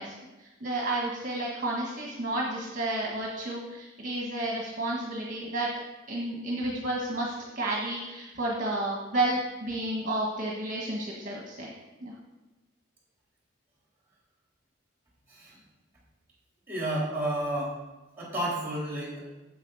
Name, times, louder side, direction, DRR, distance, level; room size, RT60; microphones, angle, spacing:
voice 1, 0.0-5.7 6.1-11.7 12.0-12.1, right 2 dB, 40° right, -3 dB, 1.4 m, -31 dB
voice 2, 16.7-17.8 18.1-19.2, right 1 dB, 10° right, -5 dB, 3.3 m, -31 dB
8.0 x 7.6 x 4.9 m, 1.1 s
head